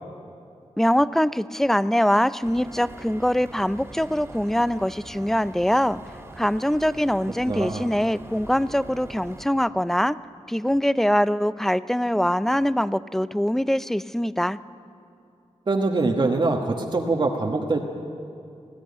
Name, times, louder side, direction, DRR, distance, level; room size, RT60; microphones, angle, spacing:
voice 1, 0.8-6.0 6.4-10.2 10.5-14.6, equal, 5° left, 16 dB, 0.4 m, -23 dB
sound 1, 2.4-9.5, right 1 dB, 20° right, 2.4 m, -44 dB
voice 2, 7.4-7.9 15.7-17.8, right 3 dB, 45° right, 1 dB, 1.3 m, -23 dB
19.5 x 15.0 x 9.6 m, 2.6 s
wide cardioid pair, 115°, 11 cm